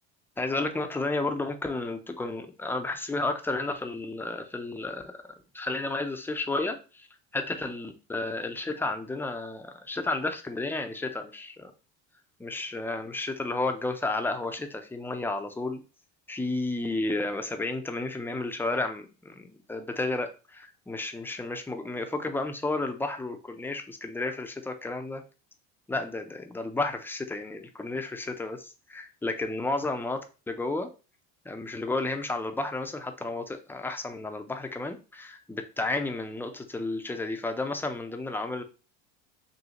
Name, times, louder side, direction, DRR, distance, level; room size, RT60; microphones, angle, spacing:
voice 1, 0.4-5.2 5.5-7.1 7.3-11.7 12.4-15.8 16.3-25.2 25.9-30.2 30.5-30.9 31.4-38.6, left 2 dB, 5° left, 5 dB, 0.6 m, -32 dB
3.9 x 2.7 x 2.9 m, 0.32 s
supercardioid pair, 85°, 35 cm